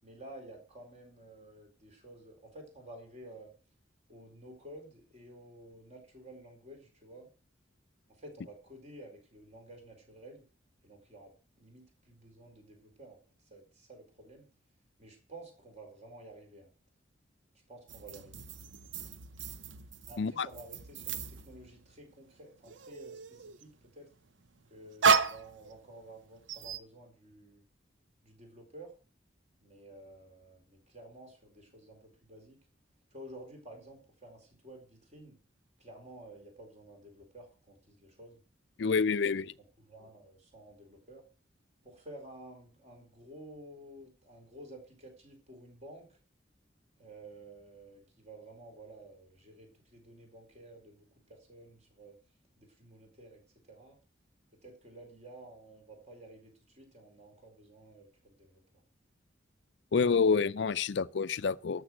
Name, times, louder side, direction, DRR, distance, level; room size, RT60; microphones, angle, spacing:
voice 1, 0.0-3.5 4.1-7.3 8.1-10.5 10.8-13.2 13.4-14.5 15.0-16.7 17.7-18.5 20.1-24.1 24.6-27.6 28.2-28.9 29.6-32.6 33.1-35.4 35.8-38.4 38.8-39.2 39.8-41.2 41.8-46.2 47.0-52.2 52.6-53.4 53.7-54.0 54.6-58.8, right 1 dB, 40° right, 4.2 m, -52 dB
sound 1, 17.9-22.1 22.4-23.7 24.4-26.1 26.5-26.8, right 5 dB, 90° right, 0.8 m, -33 dB
voice 2, 38.8-39.5 59.9-61.8, left 5 dB, 65° left, 0.5 m, -28 dB
13.0 x 6.9 x 6.1 m
head